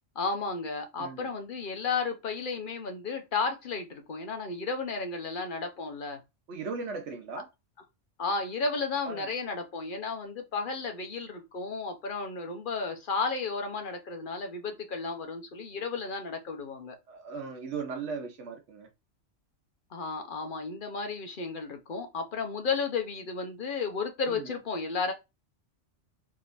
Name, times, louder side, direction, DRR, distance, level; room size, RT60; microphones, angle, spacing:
voice 1, 0.1-6.2 8.2-17.0 19.9-25.1, left 4 dB, 50° left, 0.9 m, -33 dB
voice 2, 1.0-1.3 6.5-7.4 9.0-9.3 17.1-18.9 24.3-24.5, right 5 dB, 70° right, 1.1 m, -37 dB
3.7 x 3.0 x 2.4 m
omnidirectional pair, 1.2 m